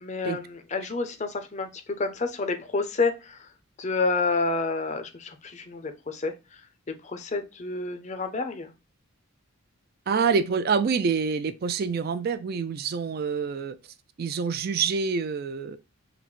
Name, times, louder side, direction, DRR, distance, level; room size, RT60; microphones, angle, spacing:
voice 1, 0.0-3.5 3.8-6.6 7.0-8.7, left 3 dB, 30° left, 0.5 m, -29 dB
voice 2, 10.1-13.8 14.2-15.8, right 5 dB, 45° right, 0.3 m, -26 dB
3.9 x 2.1 x 4.3 m
head